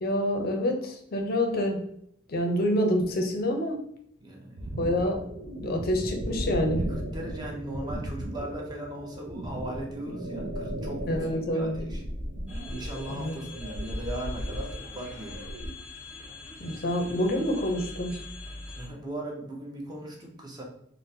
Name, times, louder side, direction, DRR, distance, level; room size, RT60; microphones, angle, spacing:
voice 1, 0.0-1.8 2.3-3.8 4.8-5.2 5.6-6.8 11.1-11.7 13.1-13.3 16.6-18.2, equal, 50° left, 4 dB, 0.5 m, -27 dB
voice 2, 4.2-4.7 6.9-11.3 11.5-12.0 12.7-15.4 18.7-20.6, right 1 dB, 20° right, -1 dB, 0.6 m, -38 dB
sound 1, 4.6-15.7, right 1 dB, 65° right, 0.5 m, -36 dB
sound 2, 12.5-18.9, left 2 dB, 5° right, 1.0 m, -43 dB
3.7 x 2.0 x 2.7 m, 0.72 s
head